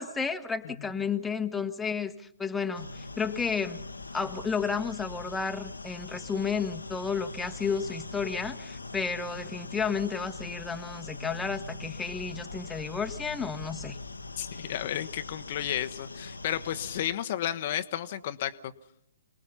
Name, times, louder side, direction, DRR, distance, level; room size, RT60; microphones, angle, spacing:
voice 1, 0.0-3.8 4.1-14.0, left 5 dB, 10° left, 7 dB, 1.2 m, -32 dB
sound 1, 2.7-17.1, left 3 dB, 80° left, 1.2 m, -42 dB
voice 2, 14.4-18.7, left 11 dB, 45° left, 9 dB, 1.0 m, -32 dB
28.0 x 20.0 x 5.7 m, 0.70 s
figure-of-eight pair, 120°, 0 cm